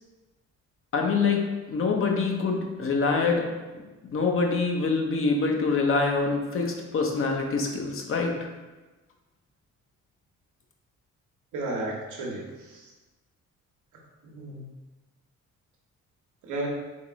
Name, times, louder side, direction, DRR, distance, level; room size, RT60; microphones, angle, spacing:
voice 1, 0.9-1.4 1.7-3.5 4.0-8.5, left 4 dB, 45° left, 1 dB, 0.8 m, -25 dB
voice 2, 11.5-12.9 14.2-14.7 16.4-16.7, right 2 dB, 85° right, -2 dB, 1.1 m, -33 dB
3.7 x 2.9 x 3.6 m, 1.2 s
cardioid pair, 90°, 30 cm